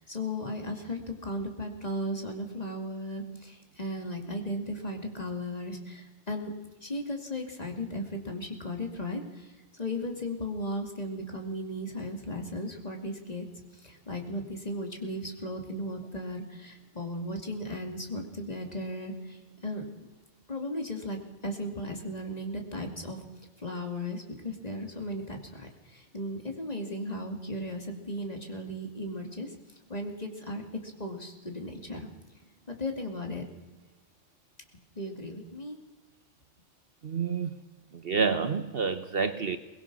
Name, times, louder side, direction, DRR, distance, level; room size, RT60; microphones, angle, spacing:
voice 1, 0.0-6.5 6.8-13.5 13.8-19.8 20.5-23.2 23.6-29.5 29.9-32.1 32.7-33.5 35.0-35.8, left 1 dB, 30° left, 3 dB, 2.6 m, -36 dB
voice 2, 37.0-37.5 37.9-39.6, right 5 dB, 55° right, 10 dB, 1.1 m, -28 dB
22.5 x 20.0 x 6.2 m, 1.1 s
omnidirectional pair, 1.3 m